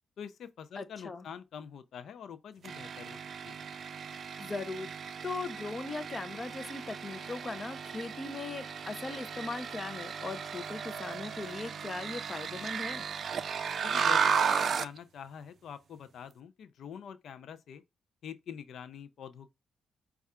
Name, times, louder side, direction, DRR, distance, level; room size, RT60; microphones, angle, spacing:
voice 1, 0.2-3.2 3.4-3.7 13.8-17.8 18.2-19.5, left 8 dB, 70° left, 0.4 m, -45 dB
voice 2, 0.8-1.3 4.4-13.0, left 3 dB, 30° left, 0.6 m, -39 dB
sound 1, 2.6-15.0, right 6 dB, 50° right, 0.4 m, -34 dB
5.3 x 2.3 x 3.5 m
cardioid pair, 120°, 0 cm